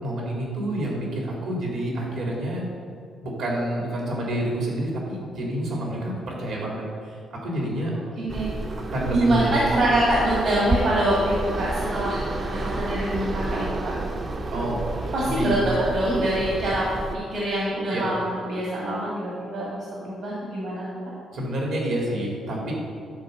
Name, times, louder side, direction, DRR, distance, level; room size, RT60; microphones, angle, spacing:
voice 1, 0.0-2.7 3.2-7.9 8.7-9.6 14.5-15.6 17.9-18.1 21.3-22.7, right 1 dB, 70° right, -3 dB, 2.8 m, -28 dB
voice 2, 8.2-8.5 9.1-12.2 12.5-14.0 15.1-16.8 17.3-18.2 18.4-20.8, right 1 dB, 55° right, -6 dB, 2.0 m, -24 dB
sound 1, 8.3-17.2, right 2 dB, 30° right, 0.5 m, -30 dB
12.0 x 4.5 x 6.6 m, 2.3 s
cardioid pair, 170°, 0 cm